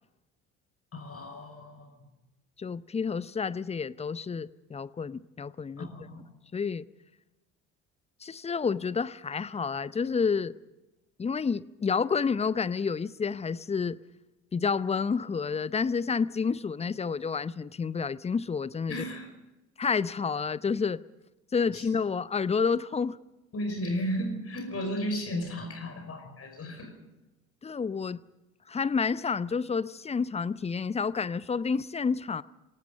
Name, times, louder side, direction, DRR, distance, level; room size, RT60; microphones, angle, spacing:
voice 1, 0.9-2.0 5.8-6.2 18.9-19.3 21.7-21.9 23.5-26.9, equal, 35° left, 5.6 m, -34 dB
voice 2, 2.6-5.9 6.5-6.9 8.2-10.6 11.2-14.0 14.5-19.0 19.8-21.0 21.5-23.2 27.6-28.2 28.7-32.4, left 5 dB, 15° left, 0.6 m, -29 dB
28.5 x 18.0 x 5.4 m
figure-of-eight pair, 55°, 39 cm